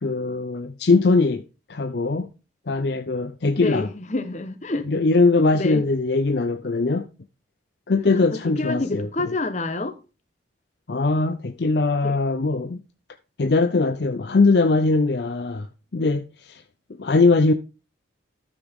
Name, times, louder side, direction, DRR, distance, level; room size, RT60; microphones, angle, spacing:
voice 1, 0.0-1.4 1.7-2.3 2.7-3.9 4.9-7.1 7.9-9.1 10.9-12.8 13.4-16.6 17.0-17.5, left 3 dB, 60° left, 0.6 m, -21 dB
voice 2, 3.6-4.9 5.5-5.8 8.1-10.0 12.0-12.1, left 2 dB, 40° left, 1.0 m, -28 dB
13.0 x 6.0 x 3.6 m
head